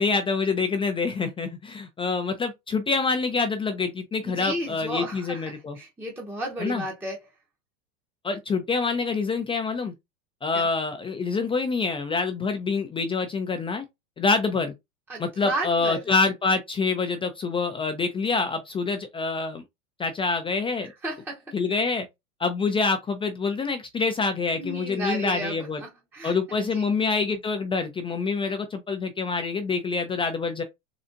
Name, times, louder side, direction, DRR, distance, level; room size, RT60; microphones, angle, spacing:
voice 1, 0.0-5.8 6.6-6.8 8.2-9.9 10.4-13.9 14.2-14.7 15.2-19.6 20.0-20.9 21.5-22.1 22.4-25.8 26.2-30.6, left 4 dB, 15° left, 0.4 m, -26 dB
voice 2, 4.2-7.2 10.5-10.7 15.1-16.1 21.0-21.4 24.5-26.9, right 1 dB, 5° right, 0.8 m, -33 dB
3.9 x 3.3 x 2.5 m
hypercardioid pair, 115°, 39 cm